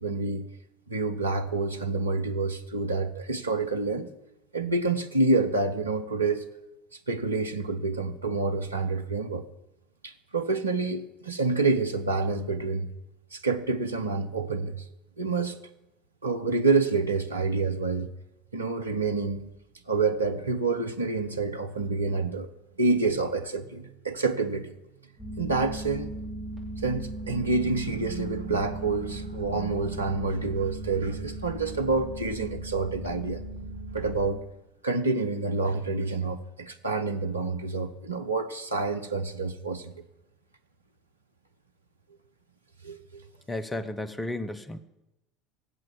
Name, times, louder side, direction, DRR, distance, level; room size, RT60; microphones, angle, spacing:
voice 1, 0.0-0.5 0.9-4.1 4.5-6.5 7.1-9.5 10.0-12.9 13.3-14.8 15.2-15.6 16.2-18.1 18.5-19.5 19.9-22.5 22.8-24.7 25.4-26.1 26.8-33.4 33.9-34.4 34.8-40.0 42.8-43.2, right 3 dB, 80° right, 0.9 m, -28 dB
sound 1, 25.2-34.3, right 1 dB, 10° right, 5.9 m, -37 dB
voice 2, 43.5-44.8, left 2 dB, 15° left, 1.0 m, -33 dB
17.5 x 7.7 x 7.6 m
figure-of-eight pair, 70°, 0 cm